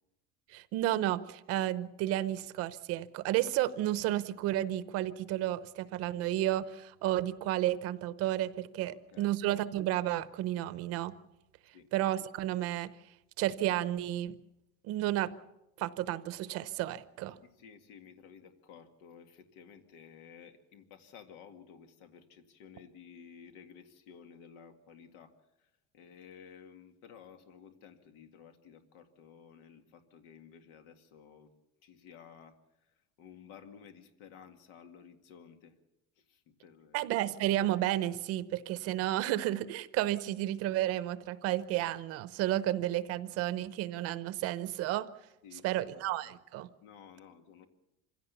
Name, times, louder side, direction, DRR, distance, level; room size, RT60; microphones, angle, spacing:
voice 1, 0.5-11.2 11.9-12.9 13.4-14.3 14.8-15.3 15.8-17.4 36.9-45.1 45.6-46.7, right 14 dB, 50° right, 15 dB, 0.8 m, -32 dB
voice 2, 8.9-9.4 11.7-11.9 17.4-25.3 25.6-31.5 31.8-32.6 32.8-35.8 36.2-37.1 45.4-46.3 46.8-47.7, left 7 dB, 85° left, 7 dB, 2.1 m, -54 dB
25.0 x 16.5 x 7.0 m, 0.91 s
cardioid pair, 180°, 31 cm